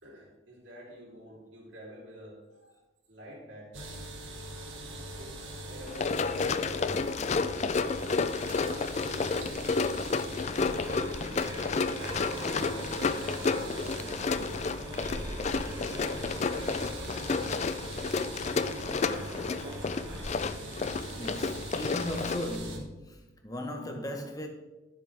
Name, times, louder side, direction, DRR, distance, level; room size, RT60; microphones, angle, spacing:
voice 1, 0.0-2.8 3.1-4.0 5.7-8.0 9.0-11.6 12.2-14.5 15.0-17.6 18.4-19.7, equal, 65° right, 3.4 m, -49 dB
sound 1, 3.7-22.8, right 1 dB, 80° right, 1.9 m, -42 dB
Run, 5.9-22.6, left 4 dB, 35° left, 0.3 m, -31 dB
sound 2, 10.5-20.2, right 1 dB, 25° right, 3.0 m, -42 dB
voice 2, 21.2-24.5, left 1 dB, 20° left, 1.1 m, -37 dB
13.0 x 7.4 x 3.4 m
head